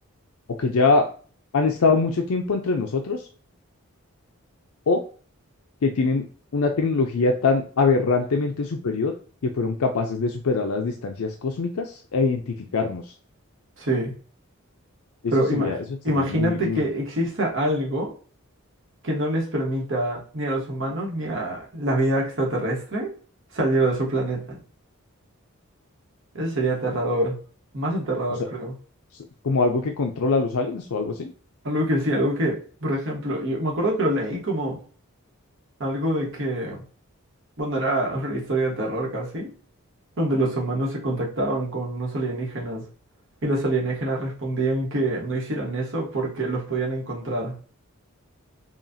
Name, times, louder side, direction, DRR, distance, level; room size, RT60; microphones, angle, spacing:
voice 1, 0.5-1.1 1.5-3.2 4.9-5.0 5.8-6.2 6.5-9.1 9.4-13.0 15.2-15.8 16.1-16.8 29.4-31.3, left 4 dB, 75° left, 4 dB, 0.5 m, -23 dB
voice 2, 13.8-14.1 15.3-15.8 16.0-18.1 19.0-23.1 23.5-24.6 26.3-27.4 27.7-28.7 31.6-34.8 35.8-36.8 37.6-39.5 40.2-42.8 43.4-47.5, right 1 dB, 60° right, -1 dB, 1.2 m, -25 dB
5.8 x 2.4 x 2.6 m, 0.41 s
head